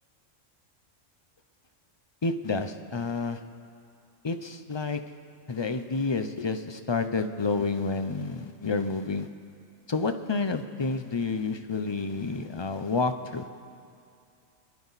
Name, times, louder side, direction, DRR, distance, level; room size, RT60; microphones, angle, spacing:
voice 1, 2.2-3.4 4.2-5.0 5.5-9.3 9.9-13.5, left 4 dB, 40° left, 8 dB, 0.3 m, -29 dB
28.5 x 11.5 x 4.1 m, 2.5 s
omnidirectional pair, 1.3 m